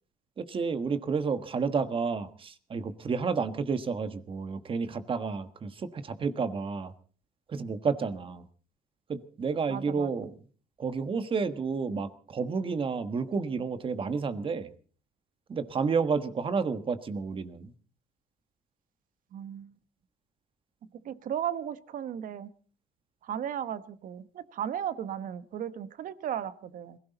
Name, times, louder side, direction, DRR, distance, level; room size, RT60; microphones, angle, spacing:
voice 1, 0.4-6.9 7.5-8.4 9.1-10.3 10.8-14.7 15.5-17.7, right 5 dB, 30° right, 11 dB, 1.3 m, -30 dB
voice 2, 9.7-10.1 19.3-19.7 21.0-22.5 23.2-27.0, right 9 dB, 55° right, 13 dB, 1.2 m, -35 dB
22.0 x 16.5 x 4.0 m, 0.41 s
cardioid pair, 110°, 17 cm